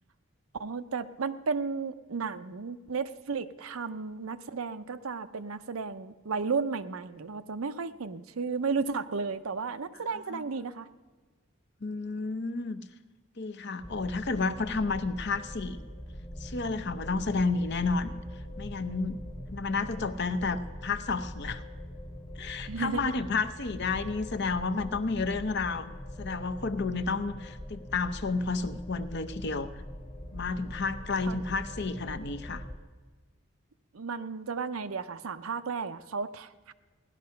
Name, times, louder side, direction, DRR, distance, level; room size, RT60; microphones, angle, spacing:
voice 1, 0.6-10.9 22.7-23.1 31.3-31.4 33.9-36.7, right 5 dB, 80° right, 11 dB, 0.6 m, -33 dB
voice 2, 11.8-12.8 13.4-15.8 16.4-18.1 18.6-19.2 19.5-21.6 22.4-25.9 26.2-29.8 30.3-32.6, left 4 dB, 55° left, 10 dB, 0.7 m, -31 dB
sound 1, 13.8-32.8, equal, 25° left, 1.2 m, -42 dB
17.0 x 11.5 x 5.7 m, 1.3 s
head